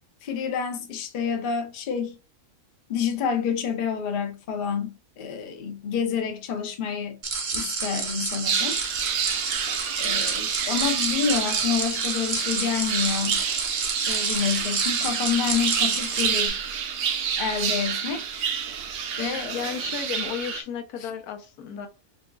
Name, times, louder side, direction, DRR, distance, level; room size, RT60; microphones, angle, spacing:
voice 1, 0.2-2.1 2.9-7.2 7.5-8.8 10.0-13.4 14.1-16.6 17.4-18.5 19.2-19.7 21.0-21.1, left 7 dB, 50° left, 0.6 m, -28 dB
sound 1, 7.2-16.5, right 5 dB, 50° right, 0.5 m, -30 dB
sound 2, 8.5-20.6, right 7 dB, 90° right, 1.3 m, -28 dB
voice 2, 19.5-21.9, left 7 dB, 80° left, 1.2 m, -33 dB
6.0 x 2.5 x 2.3 m
omnidirectional pair, 1.6 m